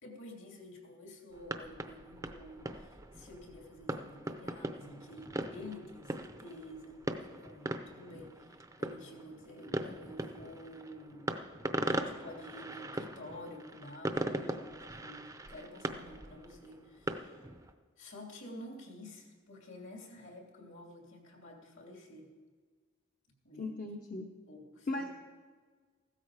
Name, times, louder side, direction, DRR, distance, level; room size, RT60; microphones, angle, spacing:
voice 1, 0.0-11.3 11.8-17.5 18.0-22.3 23.4-23.7 24.5-25.0, left 1 dB, 60° left, 0 dB, 2.8 m, -50 dB
sound 1, 1.3-17.7, right 1 dB, 15° right, 0.6 m, -40 dB
voice 2, 23.6-24.3 24.9-25.1, left 2 dB, 40° left, 2 dB, 0.9 m, -37 dB
15.5 x 13.0 x 4.9 m, 1.5 s
head